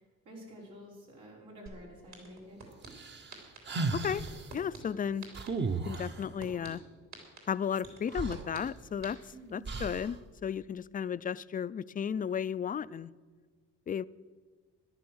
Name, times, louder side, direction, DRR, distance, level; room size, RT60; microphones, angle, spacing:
voice 1, 0.0-2.6 9.3-9.7, equal, 85° right, 5.1 m, -50 dB
sound 1, 1.7-1.8 2.1-2.9 3.3-3.6 4.0-4.8 5.2-5.5 5.9-6.7 7.1-7.4 7.8-8.6 9.0-9.1, right 5 dB, 65° right, 3.8 m, -46 dB
sound 2, 2.9-4.5 5.3-6.3 7.8-7.9 8.1-9.1 9.6-10.2, right 3 dB, 35° right, 1.0 m, -35 dB
voice 2, 3.9-4.2 4.5-5.3 5.8-6.8 7.5-9.2 9.5-13.1 13.9-14.1, left 8 dB, 30° left, 0.4 m, -34 dB
13.5 x 11.0 x 6.3 m
cardioid pair, 90°, 30 cm